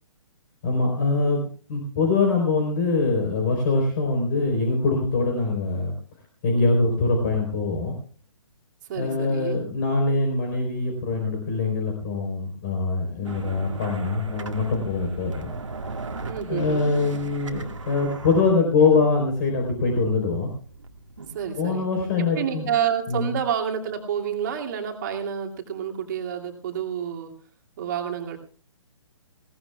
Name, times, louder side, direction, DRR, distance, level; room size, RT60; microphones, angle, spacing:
voice 1, 0.6-5.9 6.4-7.9 9.0-15.5 16.5-20.5 21.6-22.7 23.1-23.3, left 3 dB, 35° left, 1 dB, 4.1 m, -23 dB
voice 2, 8.9-9.6 16.2-16.9 21.3-21.8 22.2-27.3 27.8-28.4, right 8 dB, 35° right, 2 dB, 2.5 m, -29 dB
sound 1, 13.2-21.7, right 3 dB, 65° right, 1.8 m, -38 dB
20.5 x 18.0 x 2.3 m, 0.41 s
figure-of-eight pair, 135°, 17 cm